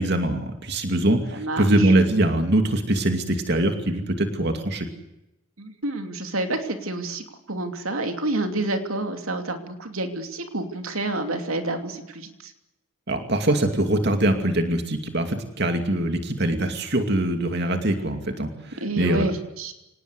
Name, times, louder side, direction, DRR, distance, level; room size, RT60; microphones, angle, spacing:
voice 1, 0.0-4.9 13.1-19.3, right 1 dB, 50° right, 6 dB, 2.5 m, -23 dB
voice 2, 1.3-1.9 5.6-12.5 18.8-19.7, right 2 dB, 75° right, 6 dB, 2.9 m, -29 dB
25.5 x 19.5 x 8.2 m, 0.90 s
head